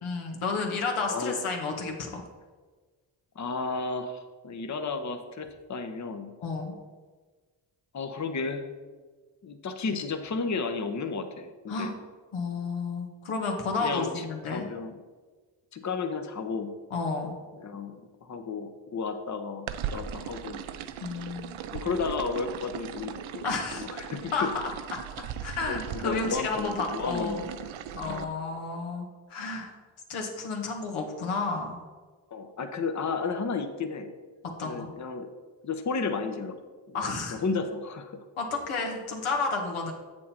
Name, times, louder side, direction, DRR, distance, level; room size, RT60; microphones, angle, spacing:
voice 1, 0.0-2.2 6.4-6.7 11.7-11.9 12.3-14.7 16.9-17.3 21.0-21.5 23.4-23.9 24.3-24.5 24.9-25.0 25.4-27.4 27.9-29.7 30.1-31.8 34.6-34.9 36.9-37.4 38.4-39.9, left 4 dB, 80° left, 2 dB, 1.5 m, -31 dB
voice 2, 3.4-6.3 7.9-8.6 9.4-11.9 13.8-15.0 15.7-16.7 17.5-20.6 21.7-23.5 23.7-24.5 25.6-27.7 28.0-28.3 32.3-34.1 34.6-35.3 35.6-36.6 36.9-38.2, left 4 dB, 35° left, 6 dB, 0.9 m, -33 dB
sound 1, 19.7-28.2, right 9 dB, 70° right, 0.7 m, -38 dB
7.4 x 6.4 x 4.4 m, 1.4 s
supercardioid pair, 50°, 49 cm